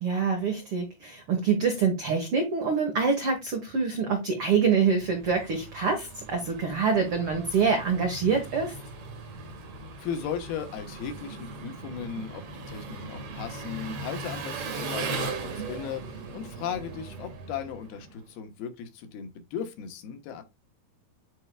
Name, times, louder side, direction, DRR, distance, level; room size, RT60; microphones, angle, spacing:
voice 1, 0.0-8.7, right 5 dB, 80° right, 1.2 m, -25 dB
Engine, 4.7-18.3, right 3 dB, 55° right, 1.8 m, -39 dB
voice 2, 10.0-16.0 16.3-20.4, left 8 dB, 75° left, 2.9 m, -36 dB
9.8 x 4.5 x 2.3 m
omnidirectional pair, 4.6 m